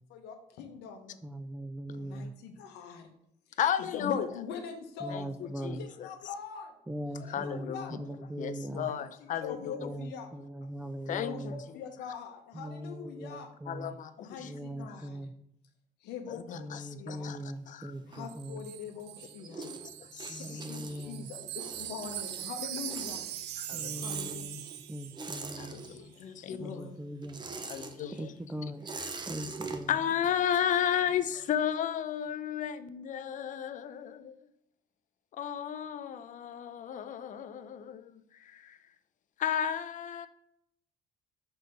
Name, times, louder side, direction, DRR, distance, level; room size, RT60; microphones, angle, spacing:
voice 1, 0.1-1.2 2.0-3.1 3.5-6.7 7.1-7.9 8.7-8.9 9.4-10.3 11.2-11.5 11.7-13.5 14.2-15.3 16.0-17.3 18.0-19.7 20.3-23.2 24.0-24.8 26.2-27.1, left 6 dB, 80° left, 0.8 m, -43 dB
voice 2, 1.2-2.3 5.0-5.9 6.9-8.9 9.7-11.6 12.5-14.0 14.4-15.3 16.5-18.7 20.3-21.3 23.7-24.6 24.9-25.8 26.6-27.4 28.2-28.9 29.3-29.9, right 1 dB, 10° right, 0.3 m, -40 dB
voice 3, 3.6-4.3 5.1-6.1 7.2-8.0 8.4-9.9 10.9-11.5 13.7-14.5 16.3-17.9 19.6-20.7 23.6-24.3 25.6-26.6 27.6-29.3 29.9-34.5 35.3-38.9 39.4-40.3, left 9 dB, 50° left, 0.5 m, -34 dB
sound 1, 17.2-18.8 19.1-26.3 26.6-31.3, right 4 dB, 25° right, 0.7 m, -44 dB
Wind chime, 18.3-25.5 25.8-26.0, right 13 dB, 85° right, 0.5 m, -41 dB
6.1 x 3.3 x 5.2 m
cardioid pair, 110°, 17 cm